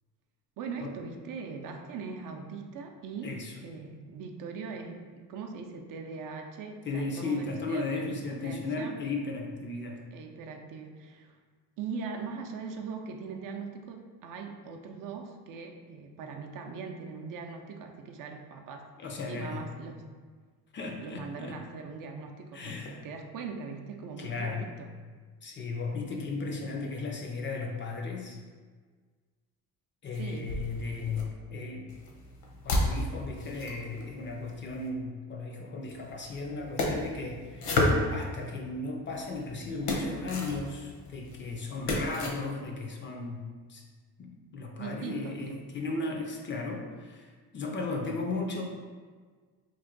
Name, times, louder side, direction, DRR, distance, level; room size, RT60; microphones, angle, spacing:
voice 1, 0.6-9.1 10.1-11.4 11.8-18.9 19.2-20.0 21.0-24.9 30.2-30.6 44.8-45.6, right 5 dB, 60° right, 3 dB, 0.5 m, -41 dB
voice 2, 3.2-3.5 6.8-10.0 19.0-19.6 20.7-21.6 22.5-23.0 24.2-24.7 25.4-28.4 30.0-31.9 32.6-37.7 38.1-43.8 44.2-48.6, left 3 dB, 35° left, 1 dB, 0.4 m, -35 dB
sound 1, 30.1-31.2 31.9-34.9 35.8-38.6 39.1-42.3, left 1 dB, 75° left, 0.9 m, -33 dB
3.0 x 2.5 x 3.7 m, 1.5 s
cardioid pair, 125°, 37 cm